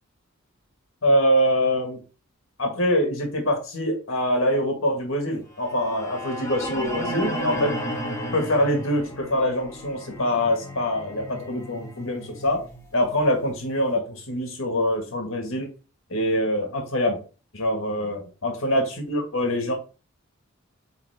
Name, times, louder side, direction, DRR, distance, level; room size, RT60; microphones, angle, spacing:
voice 1, 1.0-2.0 2.6-7.7 8.3-12.7 12.9-15.7 16.1-17.2 17.5-19.7, equal, 75° left, 2 dB, 1.8 m, -24 dB
sound 1, 5.6-13.7, equal, 15° left, 1.6 m, -34 dB
8.5 x 3.6 x 3.5 m, 0.35 s
head